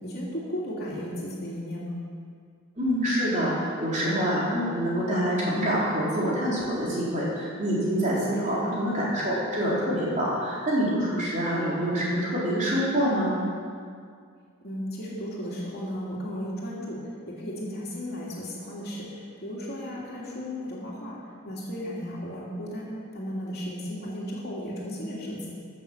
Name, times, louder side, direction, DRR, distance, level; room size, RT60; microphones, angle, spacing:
voice 1, 0.0-2.0 8.4-8.6 14.6-21.2 21.4-25.5, equal, 50° left, -4 dB, 2.7 m, -35 dB
voice 2, 2.8-13.4, equal, 35° right, -7 dB, 3.4 m, -26 dB
14.0 x 6.6 x 7.1 m, 2.1 s
head